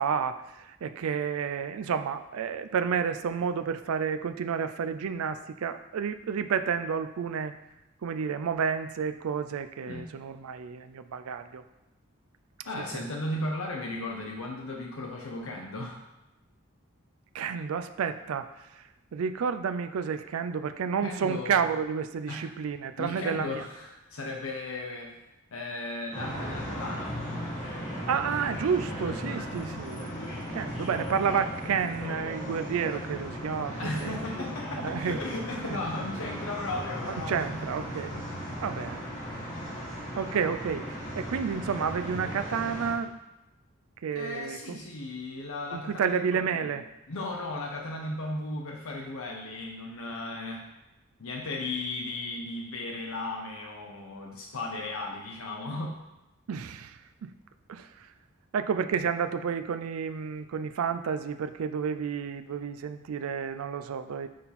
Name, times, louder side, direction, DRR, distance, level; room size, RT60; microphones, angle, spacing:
voice 1, 0.0-7.5 8.0-11.6 12.9-13.0 17.3-18.5 19.1-23.7 28.1-30.2 30.5-34.1 34.8-35.2 35.6-35.8 37.3-38.1 38.6-39.0 40.2-43.2 44.0-44.8 45.7-46.9 56.5-57.3 57.7-58.1 58.5-64.3, right 6 dB, 90° right, 9 dB, 0.4 m, -30 dB
voice 2, 12.7-16.0 21.0-21.8 22.3-22.4 23.0-25.1 25.5-27.2 28.7-29.5 33.8-37.5 39.6-39.8 44.1-46.8 47.1-50.6 51.2-56.0, left 2 dB, 85° left, 0 dB, 0.8 m, -36 dB
sound 1, 26.1-42.9, equal, 35° left, 2.1 m, -36 dB
7.6 x 4.2 x 4.1 m, 0.96 s
head